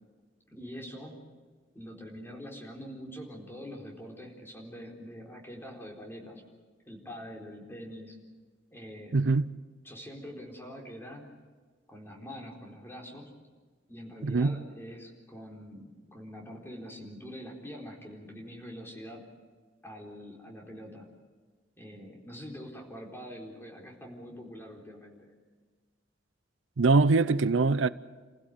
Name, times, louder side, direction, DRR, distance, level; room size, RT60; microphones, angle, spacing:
voice 1, 0.5-1.2 1.7-6.4 6.9-8.2 8.7-9.2 9.8-11.3 11.9-13.3 13.9-19.2 19.8-21.1 21.8-25.3, equal, 10° left, 4.2 m, -44 dB
voice 2, 9.1-9.5 14.2-14.6 26.8-27.9, right 3 dB, 85° right, 0.6 m, -23 dB
28.0 x 16.0 x 8.0 m
head